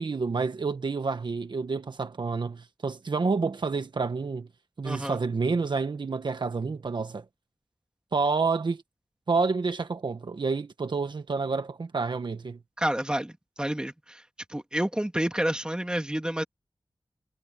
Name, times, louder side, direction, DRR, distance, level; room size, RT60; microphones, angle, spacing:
voice 1, 0.0-4.5 4.8-7.2 8.1-8.8 9.3-12.6, right 4 dB, 70° right, 1.3 m, -29 dB
voice 2, 4.8-5.2 12.8-14.2 14.5-16.4, right 1 dB, 10° right, 2.9 m, -29 dB
wide cardioid pair, 70°, 8 cm